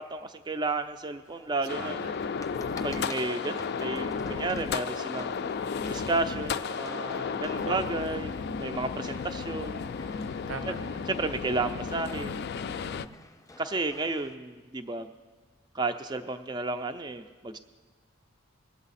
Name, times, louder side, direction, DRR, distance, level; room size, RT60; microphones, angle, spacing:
voice 1, 0.0-2.0 2.8-9.9 10.7-10.8 11.1-12.4 13.6-15.1 15.7-17.6, right 3 dB, 20° right, 7 dB, 0.4 m, -32 dB
sound 1, 1.2-14.3, left 2 dB, 15° left, 0.8 m, -51 dB
sound 2, 1.7-13.1, left 5 dB, 50° left, 0.3 m, -33 dB
voice 2, 1.7-2.2 7.7-8.0 10.5-11.1 12.9-13.2, right 4 dB, 70° right, 11 dB, 0.8 m, -41 dB
21.0 x 8.0 x 4.1 m, 1.4 s
head